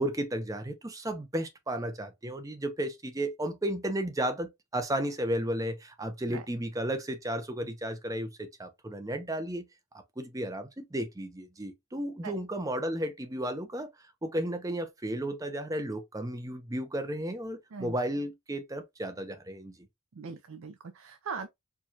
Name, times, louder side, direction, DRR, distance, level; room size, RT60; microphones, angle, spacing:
voice 1, 0.0-9.7 10.2-13.9 14.2-19.7, right 1 dB, 15° right, 0.5 m, -33 dB
voice 2, 20.2-21.5, right 5 dB, 65° right, 0.4 m, -40 dB
4.5 x 2.3 x 2.7 m
head